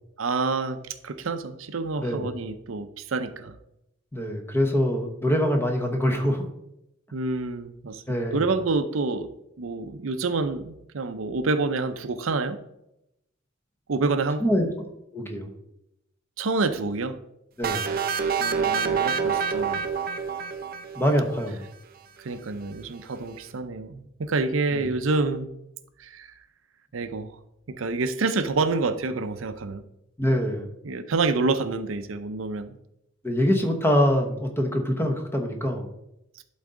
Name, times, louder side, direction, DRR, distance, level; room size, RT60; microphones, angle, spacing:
voice 1, 0.2-3.6 7.1-9.3 9.6-12.6 13.9-14.4 16.4-17.1 18.4-19.8 22.2-25.5 26.0-26.3 26.9-27.3 27.7-29.8 30.8-32.8, right 3 dB, 85° right, 10 dB, 0.6 m, -28 dB
voice 2, 2.0-2.3 4.1-6.4 8.1-8.4 14.4-14.7 15.1-15.5 17.6-17.9 21.0-21.6 24.7-24.9 30.2-30.7 33.2-35.9, equal, 10° left, 3 dB, 1.0 m, -24 dB
sound 1, 17.6-21.4, right 6 dB, 50° right, 0.6 m, -27 dB
11.5 x 4.0 x 3.8 m, 0.83 s
head